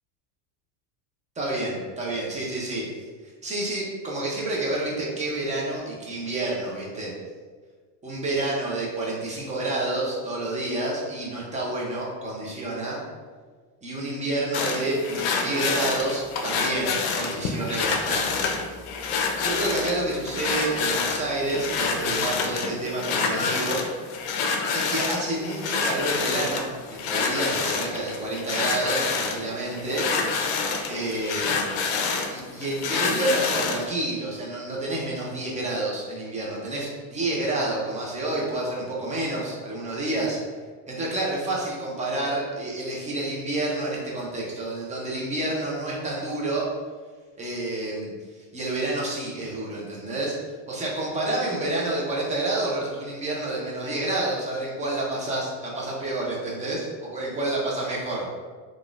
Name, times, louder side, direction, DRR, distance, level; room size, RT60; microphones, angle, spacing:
voice 1, 1.4-2.9 3.2-7.1 8.0-13.0 13.8-18.5 19.4-23.8 24.7-30.1 30.9-31.6 32.3-40.4 40.9-46.7 47.4-50.4 50.7-58.3, right 2 dB, 15° right, -4 dB, 0.6 m, -29 dB
sound 1, 14.5-33.9, left 5 dB, 65° left, 0.6 m, -27 dB
3.7 x 2.4 x 2.4 m, 1.5 s
supercardioid pair, 135°, 48 cm